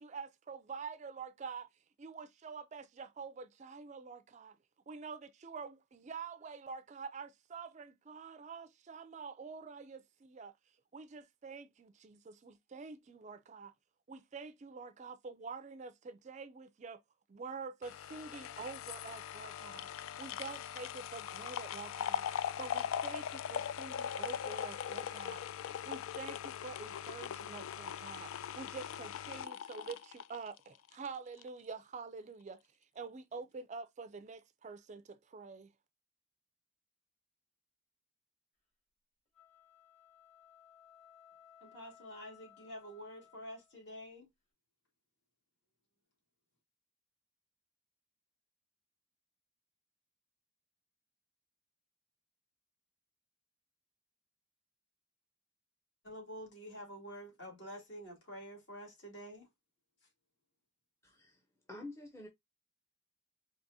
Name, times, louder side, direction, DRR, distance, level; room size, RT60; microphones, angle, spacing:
voice 1, 0.0-1.7 2.0-4.6 4.9-10.5 10.9-13.7 14.1-17.0 17.3-19.9 20.2-32.6 32.9-35.7, right 5 dB, 35° right, 0.3 m, -47 dB
sound 1, 17.8-31.1 31.4-31.5, left 9 dB, 75° left, 0.3 m, -40 dB
sound 2, 39.3-43.8, left 9 dB, 35° left, 1.9 m, -61 dB
voice 2, 41.6-44.3 56.0-59.5, equal, 55° left, 2.4 m, -48 dB
voice 3, 61.0-62.3, left 2 dB, 15° left, 0.6 m, -49 dB
4.7 x 2.9 x 2.5 m
head